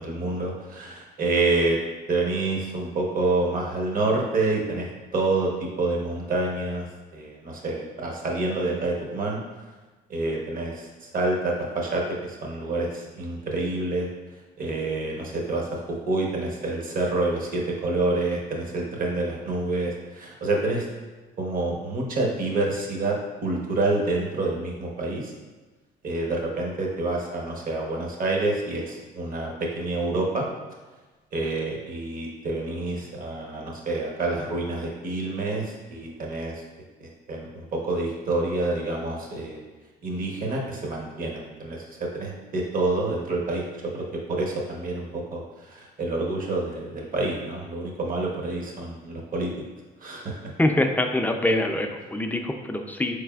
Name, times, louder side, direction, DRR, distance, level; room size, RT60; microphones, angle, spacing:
voice 1, 0.0-1.8 2.1-6.9 7.1-9.4 10.1-14.1 14.6-20.8 21.4-23.2 23.4-25.3 26.0-30.5 31.3-36.6 37.0-39.6 40.0-45.4 45.7-49.5 50.0-50.5, right 2 dB, 45° right, 0 dB, 0.9 m, -27 dB
voice 2, 50.6-53.2, left 1 dB, 10° left, 4 dB, 0.3 m, -24 dB
4.2 x 3.3 x 2.3 m, 1.3 s
supercardioid pair, 80°, 19 cm